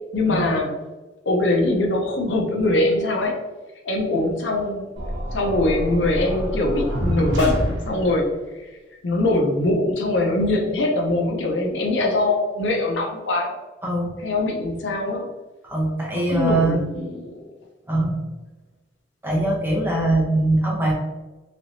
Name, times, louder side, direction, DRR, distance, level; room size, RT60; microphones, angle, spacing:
voice 1, 0.1-0.7 1.3-3.4 3.9-4.9 5.3-8.4 9.0-13.5 14.2-15.3 16.1-17.3, left 2 dB, 80° left, 1 dB, 0.7 m, -22 dB
sound 1, 5.0-8.3, equal, 70° right, 0.8 m, -27 dB
voice 2, 13.8-14.2 15.6-16.8 17.9-18.2 19.2-20.9, right 1 dB, 10° right, -3 dB, 0.8 m, -22 dB
3.3 x 2.9 x 2.6 m, 1.2 s
head